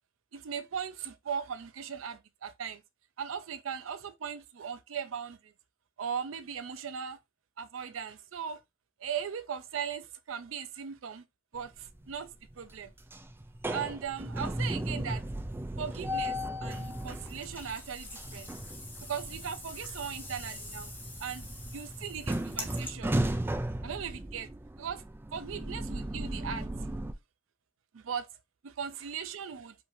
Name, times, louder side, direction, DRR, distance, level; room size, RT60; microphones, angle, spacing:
voice 1, 0.3-2.8 3.2-5.5 6.0-7.2 7.6-8.6 9.0-11.2 11.5-12.9 13.7-15.2 15.8-18.5 19.0-20.9 21.2-21.4 21.7-23.2 23.8-24.5 24.8-25.0 25.3-26.9 27.9-28.3 28.6-29.7, right 7 dB, 85° right, 0.5 m, -38 dB
sound 1, 11.6-12.1 12.5-27.1, right 1 dB, 10° right, 0.3 m, -36 dB
sound 2, 16.7-22.9, left 2 dB, 10° left, 0.9 m, -46 dB
5.1 x 2.7 x 3.0 m
head